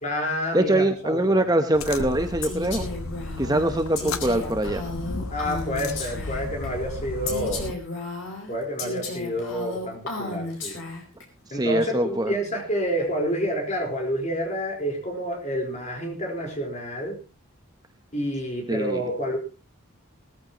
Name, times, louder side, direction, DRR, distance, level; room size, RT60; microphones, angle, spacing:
voice 1, 0.0-1.4 5.3-7.6 8.5-10.8 11.5-17.2 18.1-19.4, equal, 35° left, 1 dB, 4.4 m, -29 dB
voice 2, 0.5-2.8 3.4-4.8 11.5-12.3 18.7-19.0, right 1 dB, 15° right, 7 dB, 0.9 m, -23 dB
sound 1, 1.7-7.7, left 3 dB, 80° left, 1.2 m, -34 dB
Female speech woman speaking, 2.4-6.7 7.3-11.2, left 2 dB, 60° left, 4.7 m, -34 dB
19.5 x 14.0 x 3.0 m, 0.32 s
head